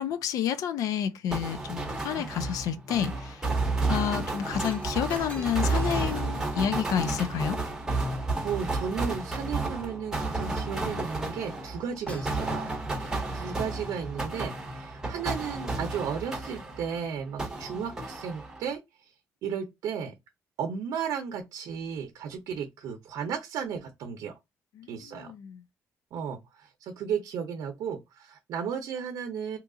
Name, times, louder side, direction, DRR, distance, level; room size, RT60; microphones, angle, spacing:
voice 1, 0.0-3.4 3.7-7.6 24.8-25.6, left 9 dB, 75° left, 0.5 m, -30 dB
sound 1, 1.3-17.0 17.4-18.7, right 2 dB, 10° right, 1.0 m, -32 dB
Shatter, 4.6-9.0 11.6-11.8 12.1-13.6 14.3-14.5, left 1 dB, 20° left, 1.1 m, -47 dB
voice 2, 8.4-12.8 13.0-19.1 19.4-20.1 20.6-24.4 24.9-25.3 26.1-29.6, right 7 dB, 80° right, 0.6 m, -34 dB
2.9 x 2.4 x 3.7 m
cardioid pair, 150°, 6 cm